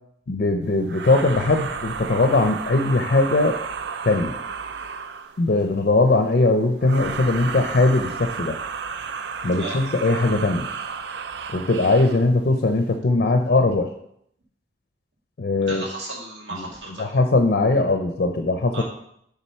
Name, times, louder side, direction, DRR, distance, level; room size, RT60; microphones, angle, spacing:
voice 1, 0.3-3.6 4.0-4.4 5.4-8.6 9.4-10.7 11.5-13.9 15.4-15.8 17.0-18.8, left 2 dB, 55° left, 5 dB, 0.5 m, -20 dB
sound 1, 0.9-5.4 6.8-12.3, right 5 dB, 65° right, 0.4 m, -32 dB
voice 2, 15.6-17.2 18.7-18.8, right 2 dB, 80° right, -3 dB, 2.1 m, -34 dB
7.4 x 3.6 x 5.6 m, 0.72 s
head